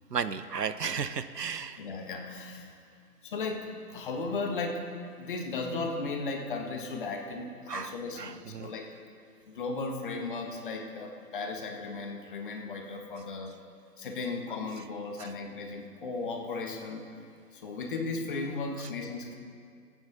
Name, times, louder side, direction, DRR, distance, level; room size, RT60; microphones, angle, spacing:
voice 1, 0.1-1.8 7.7-8.7, right 6 dB, 80° right, 13 dB, 0.8 m, -34 dB
voice 2, 1.8-2.8 3.2-4.8 5.2-8.9 9.5-13.5 14.0-17.0 17.5-19.4, left 3 dB, 30° left, 3 dB, 1.3 m, -36 dB
23.5 x 9.0 x 4.0 m, 2.2 s
figure-of-eight pair, 140°, 47 cm